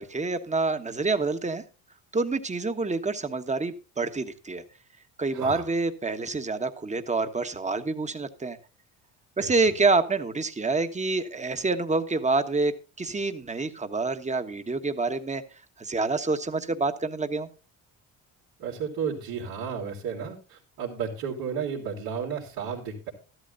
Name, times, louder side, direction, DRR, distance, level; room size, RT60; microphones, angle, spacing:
voice 1, 0.0-1.6 2.1-4.6 5.2-8.6 9.4-15.4 15.8-17.5, right 3 dB, 20° right, 9 dB, 1.4 m, -27 dB
voice 2, 5.3-5.7 9.4-9.7 18.6-23.1, right 6 dB, 75° right, -5 dB, 3.4 m, -33 dB
13.5 x 12.5 x 2.7 m, 0.34 s
supercardioid pair, 85°, 35 cm